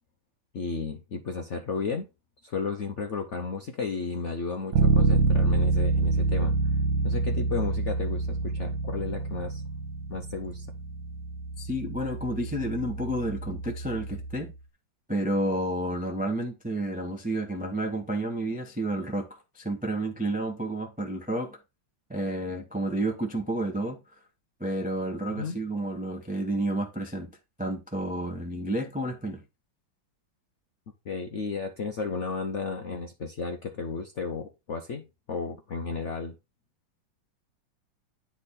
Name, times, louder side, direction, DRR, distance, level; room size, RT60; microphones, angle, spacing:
voice 1, 0.5-2.1 2.4-6.6 7.0-9.6 10.1-10.7 25.3-25.6 31.1-36.4, left 5 dB, 70° left, 0.6 m, -33 dB
Bass guitar, 4.7-14.5, right 4 dB, 85° right, 1.6 m, -27 dB
voice 2, 11.6-14.5 15.1-21.6 22.1-24.0 24.6-27.3 27.6-29.4, right 1 dB, 10° right, 0.4 m, -30 dB
10.0 x 3.6 x 4.1 m
omnidirectional pair, 2.1 m